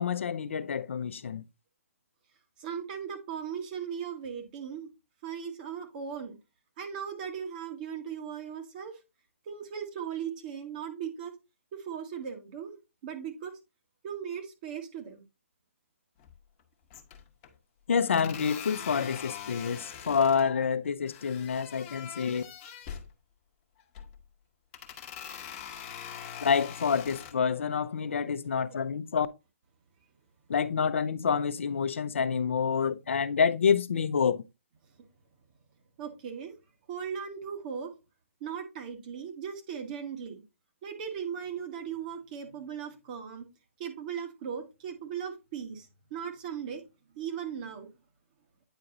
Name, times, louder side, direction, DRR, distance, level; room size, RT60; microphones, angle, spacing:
voice 1, 0.0-1.4 17.9-22.4 26.4-29.3 30.5-34.4, left 6 dB, 65° left, 0.6 m, -28 dB
voice 2, 2.6-4.9 5.2-6.4 6.8-9.0 9.4-11.3 11.7-12.8 13.0-13.6 14.0-15.2 36.0-36.5 36.9-37.9 38.4-40.4 40.8-43.5 43.8-46.8 47.1-47.9, right 7 dB, 40° right, 1.5 m, -38 dB
sound 1, 16.2-16.6 16.9-17.5 18.1-20.5 21.1-23.1 23.8-24.2 24.7-27.3, left 8 dB, 30° left, 1.0 m, -43 dB
9.0 x 4.7 x 2.6 m
figure-of-eight pair, 140°, 7 cm